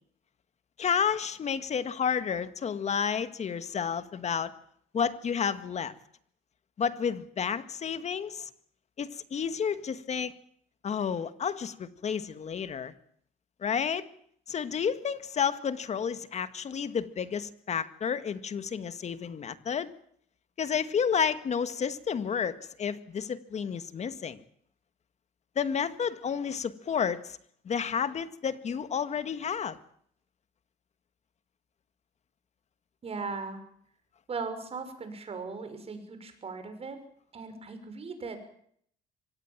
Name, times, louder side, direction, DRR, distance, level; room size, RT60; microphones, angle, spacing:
voice 1, 0.8-4.5 4.9-5.9 6.8-8.5 9.0-10.3 10.8-12.9 13.6-14.1 14.5-19.9 20.6-24.4 25.6-27.4 27.7-29.8, left 7 dB, 40° left, 12 dB, 1.9 m, -31 dB
voice 2, 33.0-33.6 34.3-37.0 37.3-38.4, right 4 dB, 35° right, 8 dB, 6.2 m, -38 dB
25.0 x 18.5 x 7.5 m, 0.65 s
cardioid pair, 110°, 17 cm